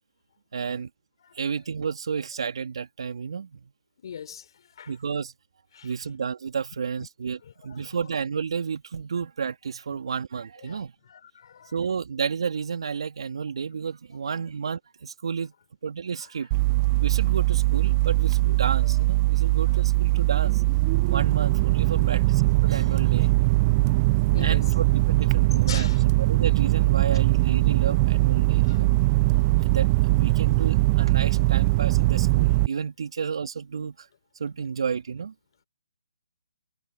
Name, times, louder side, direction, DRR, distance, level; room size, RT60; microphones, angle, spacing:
voice 1, 0.5-0.9 1.3-3.7 4.9-5.3 5.8-10.9 11.7-15.5 15.8-16.5 17.0-20.6 21.1-23.3 24.4-28.9 29.6-34.1 34.4-35.3, right 6 dB, 65° right, 3.3 m, -31 dB
voice 2, 4.0-4.9 5.7-5.9 7.0-7.1 7.4-8.0 10.6-11.7 18.5-18.6 18.8-19.0 21.1-21.2 21.9-22.2 24.3-24.6 25.7-26.0 28.6-28.8 30.3-30.4, left 8 dB, 50° left, 4.6 m, -42 dB
sound 1, 16.5-32.7, right 22 dB, 25° right, 0.6 m, -21 dB
hypercardioid pair, 150°, 3 cm